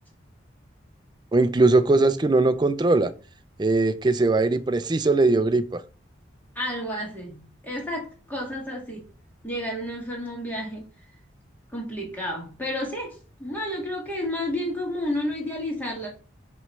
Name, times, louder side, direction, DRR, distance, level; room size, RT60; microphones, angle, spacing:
voice 1, 1.3-3.1 3.6-5.8, right 2 dB, 20° right, 0.4 m, -20 dB
voice 2, 6.6-9.0 9.4-10.8 11.7-16.1, left 1 dB, 10° left, 1.8 m, -31 dB
6.2 x 3.1 x 5.3 m
head